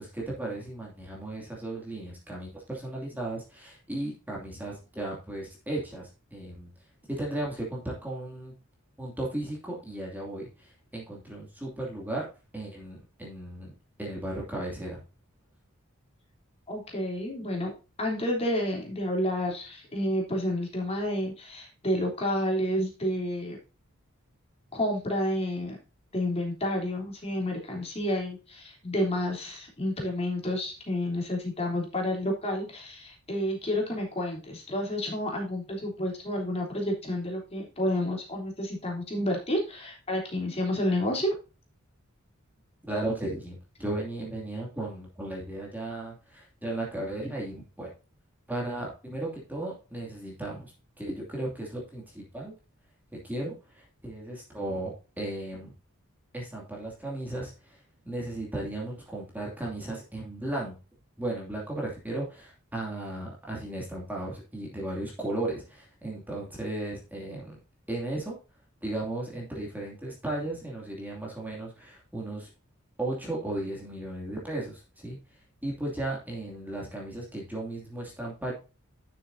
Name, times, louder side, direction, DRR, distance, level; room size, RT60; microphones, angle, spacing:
voice 1, 0.0-6.7 7.1-8.5 9.0-12.3 12.5-13.7 14.0-15.0 42.9-47.9 48.5-50.6 51.0-52.5 53.1-55.7 56.3-57.8 58.0-60.8 61.2-67.6 67.9-68.4 68.8-72.5 73.0-75.2 75.6-78.5, right 1 dB, 10° right, -3 dB, 2.6 m, -35 dB
voice 2, 16.7-17.7 18.0-23.6 24.7-25.8 26.1-41.3 42.9-43.0, left 1 dB, 30° left, -1 dB, 3.4 m, -30 dB
11.5 x 7.1 x 2.7 m, 0.31 s
head